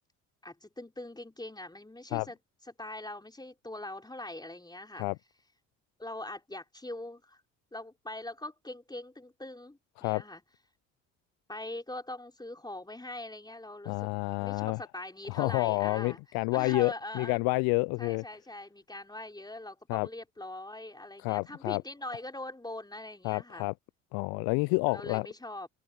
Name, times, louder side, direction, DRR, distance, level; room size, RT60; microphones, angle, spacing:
voice 1, 0.4-2.4 2.7-5.1 6.0-7.4 7.7-10.4 11.5-14.1 14.4-16.2 16.5-17.4 18.0-23.7 24.5-25.7, left 1 dB, 10° left, 4.5 m, -42 dB
voice 2, 13.9-14.8 15.3-18.2 19.9-20.1 21.2-21.8 23.2-23.7 24.1-25.3, left 29 dB, 65° left, 0.5 m, -29 dB
open air
hypercardioid pair, 55°, 39 cm